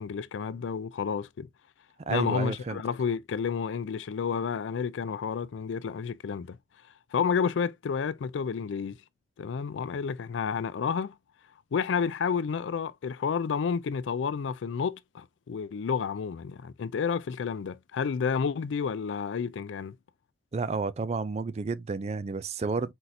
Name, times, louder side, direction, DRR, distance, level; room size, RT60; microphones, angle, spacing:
voice 1, 0.0-1.5 2.1-6.6 7.1-9.0 9.4-11.1 11.7-20.0, left 6 dB, 85° left, 0.4 m, -30 dB
voice 2, 2.1-2.8 20.5-22.9, right 4 dB, 35° right, 0.3 m, -31 dB
4.5 x 4.0 x 2.6 m
head